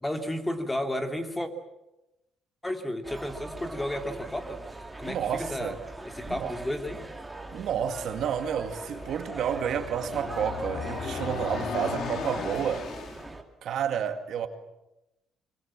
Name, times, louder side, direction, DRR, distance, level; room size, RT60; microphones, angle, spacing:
voice 1, 0.0-1.5 2.6-4.6 5.0-5.8 6.0-7.0, left 1 dB, 10° left, 2.7 m, -32 dB
sound 1, 3.0-13.4, right 2 dB, 10° right, 2.7 m, -41 dB
voice 2, 5.0-5.8 6.3-6.5 7.5-12.9 13.6-14.5, right 8 dB, 65° right, 2.1 m, -30 dB
sound 2, 7.8-13.3, left 6 dB, 60° left, 2.6 m, -37 dB
24.0 x 24.0 x 7.5 m
cardioid pair, 100°, 0 cm